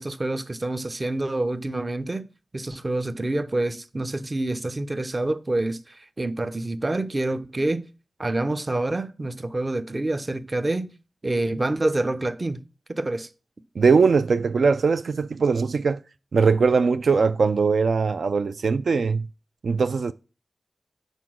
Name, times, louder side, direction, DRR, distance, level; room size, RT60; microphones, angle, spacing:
voice 1, 0.0-2.3 2.5-7.9 8.2-10.9 11.2-12.6 12.9-13.3, right 2 dB, 25° right, 0.6 m, -27 dB
voice 2, 13.8-16.0 16.3-19.3 19.6-20.1, right 5 dB, 70° right, 0.3 m, -21 dB
8.2 x 3.9 x 6.1 m
wide cardioid pair, 120°, 0 cm